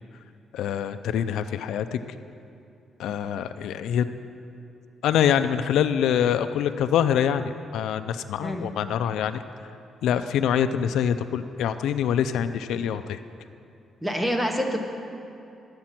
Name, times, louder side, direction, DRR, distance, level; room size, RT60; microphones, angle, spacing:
voice 1, 0.5-2.0 3.0-4.1 5.0-9.4 10.0-13.2, left 9 dB, 90° left, 10 dB, 0.5 m, -25 dB
voice 2, 14.0-14.8, equal, 5° right, 3 dB, 1.0 m, -26 dB
13.0 x 8.7 x 5.9 m, 2.6 s
cardioid pair, 170°, 0 cm